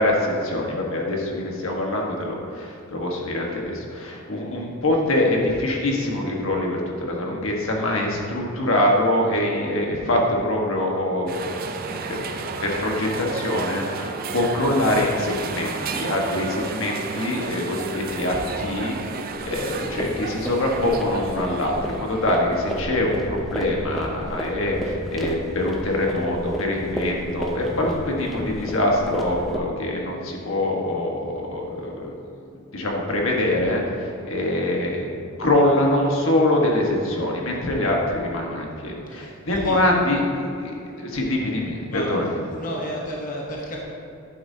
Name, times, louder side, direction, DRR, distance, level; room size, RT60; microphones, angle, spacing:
voice 1, 0.0-12.2 12.6-32.4 32.7-42.3, left 1 dB, 70° left, -1 dB, 1.4 m, -24 dB
sound 1, 11.3-22.5, right 4 dB, 45° right, 0.5 m, -32 dB
sound 2, 19.3-29.6, equal, ahead, 0.7 m, -33 dB
voice 2, 39.1-39.8 41.9-42.2 42.5-43.8, equal, 40° left, -3 dB, 1.0 m, -32 dB
11.0 x 8.9 x 2.8 m, 2.6 s
head